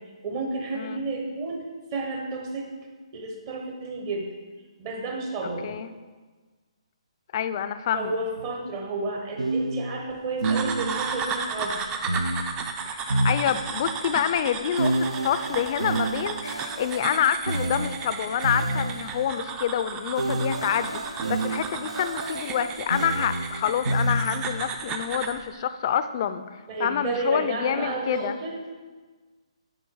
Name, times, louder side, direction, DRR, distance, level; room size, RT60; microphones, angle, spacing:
voice 1, 0.2-1.6 1.9-2.7 3.1-4.4 4.8-5.7 7.9-12.0 26.7-28.7, right 2 dB, 35° right, 2 dB, 1.1 m, -31 dB
voice 2, 7.3-8.2 12.9-26.4 26.8-28.3, left 9 dB, 40° left, 12 dB, 0.4 m, -27 dB
sound 1, 8.4-8.5 9.4-11.2 12.1-14.0 14.8-19.3 20.1-24.7, right 2 dB, 90° right, 0.5 m, -29 dB
sound 2, 10.4-25.4, right 5 dB, 20° right, 0.4 m, -34 dB
9.2 x 3.6 x 4.7 m, 1.4 s
hypercardioid pair, 150°, 3 cm